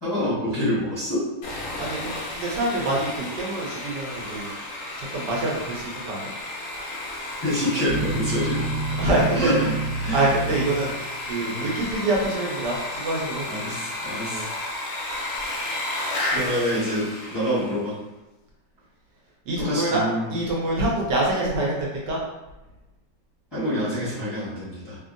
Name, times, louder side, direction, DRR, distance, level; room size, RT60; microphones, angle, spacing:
voice 1, 0.0-1.2 7.4-8.7 9.3-9.7 10.0-10.6 11.4-11.7 13.5-14.5 16.3-17.9 19.6-20.3 23.5-25.0, equal, 20° left, -12 dB, 0.7 m, -26 dB
Sawing, 1.4-17.8, left 1 dB, 75° left, 0.6 m, -33 dB
voice 2, 1.8-4.5 5.0-6.3 9.0-9.5 10.1-10.9 11.3-13.4 14.3-14.4 16.3-16.6 19.5-20.0 20.3-22.2, right 2 dB, 75° right, -3 dB, 1.2 m, -26 dB
sound 1, 7.9-11.3, right 2 dB, 50° right, 1.0 m, -29 dB
2.8 x 2.7 x 2.5 m, 1.0 s
omnidirectional pair, 2.0 m